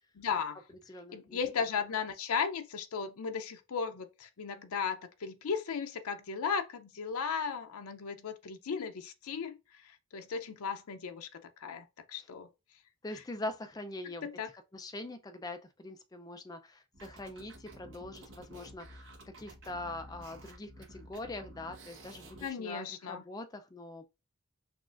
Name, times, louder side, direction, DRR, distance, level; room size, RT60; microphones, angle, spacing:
voice 1, 0.2-0.6 1.1-9.6 10.1-12.5 14.2-14.5 22.4-23.2, left 6 dB, 85° left, 0.5 m, -36 dB
voice 2, 0.9-1.4 12.2-12.3 13.0-14.3 14.7-19.1 19.4-24.1, left 2 dB, 15° left, 0.4 m, -43 dB
sound 1, 16.9-22.5, right 1 dB, 55° right, 0.9 m, -52 dB
5.9 x 2.4 x 2.4 m
head